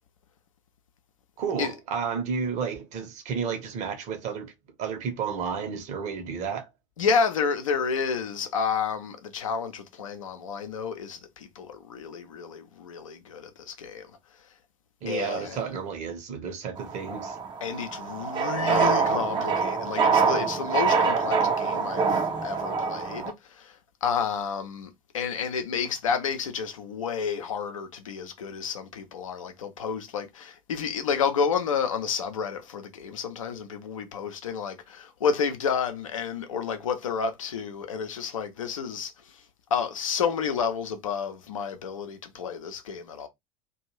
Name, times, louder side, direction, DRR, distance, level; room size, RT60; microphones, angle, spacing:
voice 1, 1.4-4.5 4.8-6.6 15.0-17.4, right 6 dB, 40° right, 0.9 m, -31 dB
voice 2, 7.0-14.1 15.1-15.6 17.6-39.4 39.7-43.3, left 6 dB, 70° left, 0.6 m, -30 dB
sound 1, 16.8-23.3, right 5 dB, 25° right, 0.6 m, -25 dB
2.5 x 2.3 x 3.1 m
figure-of-eight pair, 70°, 17 cm